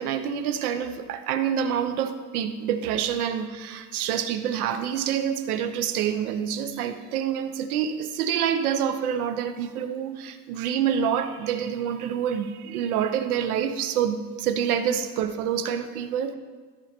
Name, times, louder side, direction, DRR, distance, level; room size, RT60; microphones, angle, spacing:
voice 1, 0.0-16.3, right 8 dB, 90° right, 9 dB, 0.9 m, -27 dB
13.5 x 5.4 x 4.4 m, 1.5 s
supercardioid pair, 155°, 43 cm